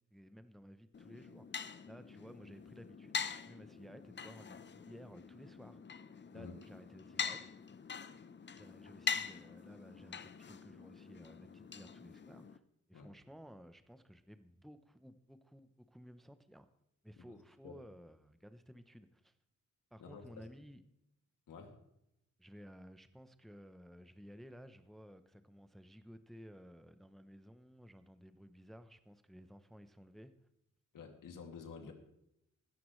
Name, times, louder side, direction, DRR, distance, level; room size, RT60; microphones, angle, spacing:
voice 1, 0.1-5.8 6.3-7.5 8.5-12.6 12.9-16.7 17.0-19.3 19.9-20.8 22.4-30.3, equal, ahead, 10 dB, 0.7 m, -56 dB
sound 1, 0.9-12.6, left 6 dB, 35° left, 0.7 m, -44 dB
voice 2, 17.2-17.8 20.0-20.5 21.5-21.8 30.9-31.9, left 5 dB, 90° left, 3 dB, 2.4 m, -50 dB
16.0 x 13.5 x 3.2 m, 0.82 s
cardioid pair, 105°, 31 cm